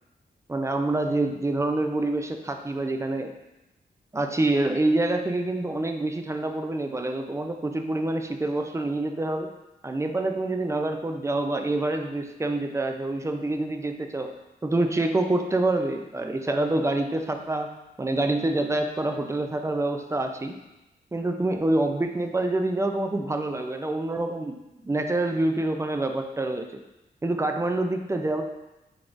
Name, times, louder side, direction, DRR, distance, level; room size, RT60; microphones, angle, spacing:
voice 1, 0.5-3.3 4.1-9.5 9.8-14.4 14.6-17.7 18.0-20.6 21.1-24.6 24.8-26.8 27.2-28.4, right 2 dB, 15° right, 5 dB, 0.4 m, -26 dB
4.5 x 4.0 x 2.5 m, 0.98 s
wide cardioid pair, 90°, 18 cm